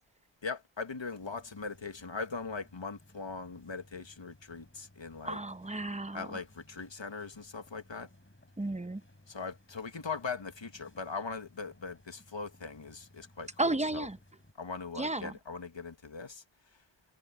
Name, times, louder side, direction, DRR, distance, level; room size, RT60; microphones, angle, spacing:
voice 1, 0.4-5.4 6.1-8.1 9.3-14.1 14.6-16.4, left 4 dB, 70° left, 1.8 m, -40 dB
sound 1, 1.2-14.5, left 1 dB, 25° left, 4.1 m, -61 dB
voice 2, 5.2-6.4 8.6-9.0 13.6-14.2 15.0-15.3, right 2 dB, 15° right, 0.9 m, -33 dB
wide cardioid pair, 50°, 47 cm